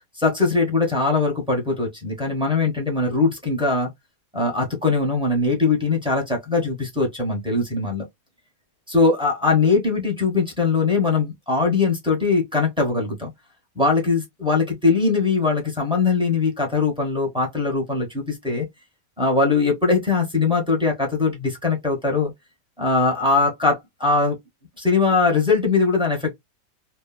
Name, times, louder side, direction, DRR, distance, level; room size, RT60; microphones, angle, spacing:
voice 1, 0.2-3.9 4.3-8.1 8.9-13.3 13.8-18.6 19.2-22.3 22.8-24.4 24.8-26.3, left 4 dB, 5° right, 0.5 m, -21 dB
3.2 x 2.1 x 2.3 m
omnidirectional pair, 1.9 m